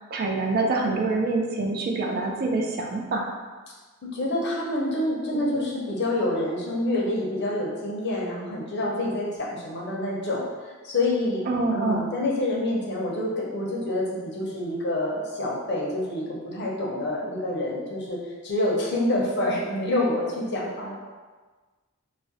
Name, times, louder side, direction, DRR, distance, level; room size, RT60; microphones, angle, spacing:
voice 1, 0.1-3.3 5.3-5.7 11.5-12.0, right 3 dB, 50° right, 0 dB, 0.4 m, -26 dB
voice 2, 4.1-16.2 16.5-18.2 18.4-20.9, left 1 dB, 55° left, -4 dB, 0.7 m, -27 dB
2.4 x 2.1 x 3.9 m, 1.3 s
head